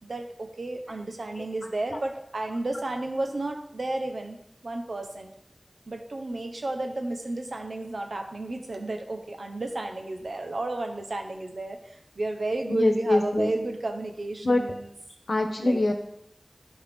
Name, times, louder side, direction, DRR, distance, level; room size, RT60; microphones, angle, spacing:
voice 1, 0.0-4.4 4.6-5.3 5.9-14.9 15.6-15.8, right 2 dB, 80° right, 4 dB, 1.0 m, -32 dB
voice 2, 12.7-13.5 14.4-14.6 15.3-15.9, left 2 dB, 75° left, 4 dB, 1.1 m, -23 dB
11.0 x 4.8 x 3.7 m, 0.78 s
wide cardioid pair, 60°, 0 cm